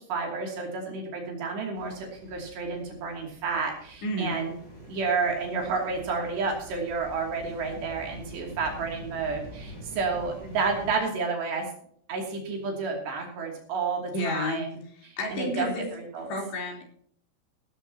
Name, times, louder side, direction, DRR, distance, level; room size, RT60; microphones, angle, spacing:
voice 1, 0.1-4.5 4.9-11.7 12.1-14.7 15.1-16.3, right 4 dB, 70° right, 0 dB, 4.9 m, -30 dB
sound 1, 1.7-11.0, equal, 15° left, 7.9 m, -46 dB
voice 2, 4.0-4.4 14.1-14.6 14.9-15.9 16.2-16.8, left 1 dB, 70° left, 0 dB, 5.9 m, -31 dB
16.5 x 15.0 x 2.9 m, 0.62 s
omnidirectional pair, 5.1 m